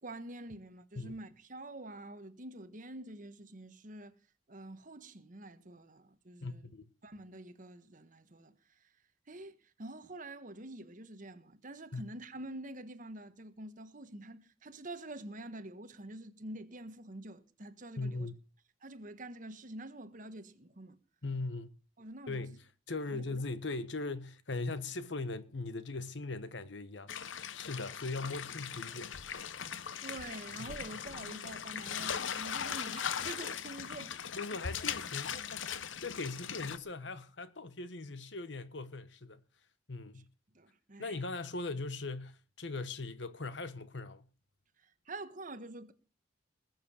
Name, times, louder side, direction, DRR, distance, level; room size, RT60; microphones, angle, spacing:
voice 1, 0.0-4.1 4.5-6.7 7.0-8.5 9.3-18.3 18.8-21.0 22.0-22.4 23.1-23.2 30.0-34.1 40.5-41.2 44.8-45.9, right 1 dB, 45° right, 1.4 m, -47 dB
voice 2, 6.4-6.9 11.9-12.0 18.0-18.4 21.2-21.7 22.3-22.6 22.9-29.3 30.6-30.7 34.3-39.4 39.9-40.3 41.0-44.3, left 3 dB, 65° left, 1.2 m, -40 dB
sound 1, 27.1-36.8, left 8 dB, 90° left, 0.8 m, -39 dB
20.0 x 7.5 x 7.1 m
head